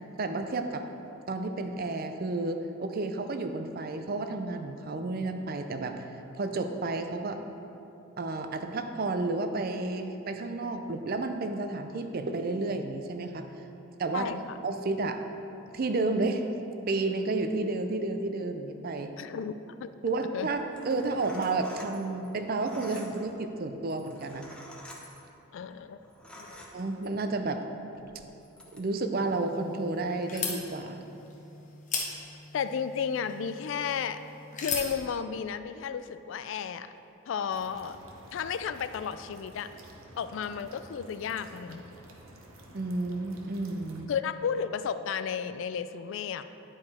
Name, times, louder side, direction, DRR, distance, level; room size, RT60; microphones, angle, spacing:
voice 1, 0.2-0.8 1.3-6.1 6.3-7.4 8.2-13.5 14.0-14.3 14.6-15.2 15.7-16.5 16.9-19.1 20.0-24.5 26.7-27.7 28.7-31.0 42.7-44.1, right 3 dB, 45° right, 7 dB, 0.4 m, -31 dB
voice 2, 14.1-14.5 19.2-19.5 19.8-19.9 20.3-20.5 25.5-26.0 26.4-26.6 32.5-34.2 34.6-36.9 37.3-38.0 38.3-39.7 40.2-41.9 44.1-46.4, left 7 dB, 60° left, 12 dB, 0.3 m, -33 dB
sound 1, 20.6-27.3 27.9-28.8, equal, 5° left, 0.6 m, -49 dB
sound 2, 29.1-35.0, left 4 dB, 35° left, 0.9 m, -38 dB
sound 3, 37.5-44.0, right 1 dB, 75° right, 0.9 m, -51 dB
10.5 x 4.9 x 4.2 m, 2.9 s
head